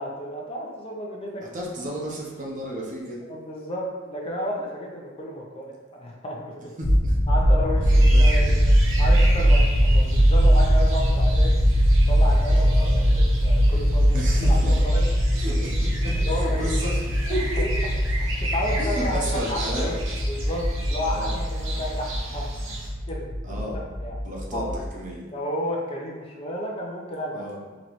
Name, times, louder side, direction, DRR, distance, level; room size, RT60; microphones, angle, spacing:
voice 1, 0.0-1.4 3.3-6.7 7.3-8.7 9.0-11.5 12.1-12.9 13.2-14.2 14.4-15.1 16.2-16.6 17.3-17.6 18.2-19.9 20.3-22.5 23.1-24.2 24.5-24.8 25.3-27.4, equal, 30° left, -1 dB, 0.5 m, -32 dB
voice 2, 1.4-3.2 6.8-7.1 7.8-8.3 9.3-9.5 12.7-13.0 14.1-14.8 15.3-17.7 18.8-19.9 21.0-21.4 23.4-23.8 24.2-25.2 27.3-27.6, equal, 40° right, -3 dB, 0.7 m, -33 dB
sound 1, 6.8-24.9, equal, 90° left, 1.1 m, -21 dB
sound 2, 7.9-22.9, right 2 dB, 80° right, 0.9 m, -36 dB
4.0 x 3.0 x 3.0 m, 1.3 s
head